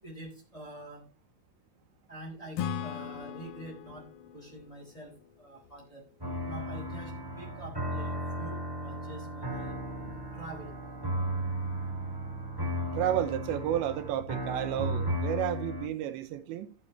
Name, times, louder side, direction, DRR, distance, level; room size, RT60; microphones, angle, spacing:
voice 1, 0.0-1.0 2.1-4.0 4.3-5.1 5.4-6.0 6.4-9.8 10.0-10.7, right 1 dB, 10° left, 3.7 m, -46 dB
Acoustic guitar / Strum, 2.6-6.1, left 8 dB, 90° left, 2.1 m, -39 dB
sound 1, 6.2-15.9, right 1 dB, 20° right, 0.6 m, -35 dB
voice 2, 12.9-16.7, right 11 dB, 85° right, 3.1 m, -31 dB
15.0 x 7.2 x 3.3 m
omnidirectional pair, 5.2 m